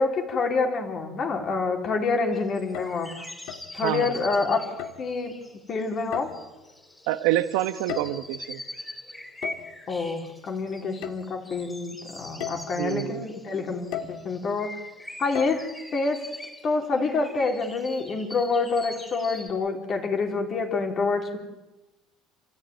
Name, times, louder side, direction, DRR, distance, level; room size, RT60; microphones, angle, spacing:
voice 1, 0.0-3.1 3.7-4.6 5.0-5.3 5.7-6.3 9.9-14.8 15.2-15.6 15.9-16.2 16.6-21.4, left 4 dB, 30° left, 3 dB, 3.3 m, -27 dB
sound 1, 2.3-19.5, left 1 dB, 5° left, 4.1 m, -43 dB
sound 2, 2.6-3.1 3.5-3.8 4.8-5.1 6.1-6.6 7.7-8.4 9.4-9.8 11.0-11.2 11.7-11.8 12.4-12.7 13.9-14.3 15.3-15.6, left 10 dB, 60° left, 2.0 m, -35 dB
voice 2, 7.1-8.6 12.4-13.3, right 14 dB, 85° right, 12 dB, 1.3 m, -27 dB
29.0 x 14.5 x 9.3 m, 1.1 s
cardioid pair, 165°, 0 cm